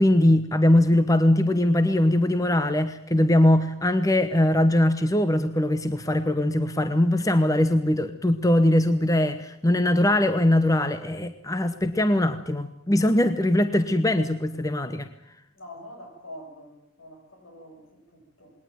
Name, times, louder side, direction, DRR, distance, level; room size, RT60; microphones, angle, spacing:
voice 1, 0.0-15.1, left 1 dB, 15° left, 11 dB, 0.9 m, -21 dB
voice 2, 15.5-18.5, left 1 dB, 80° left, 3 dB, 7.8 m, -45 dB
20.5 x 18.5 x 9.3 m, 0.78 s
head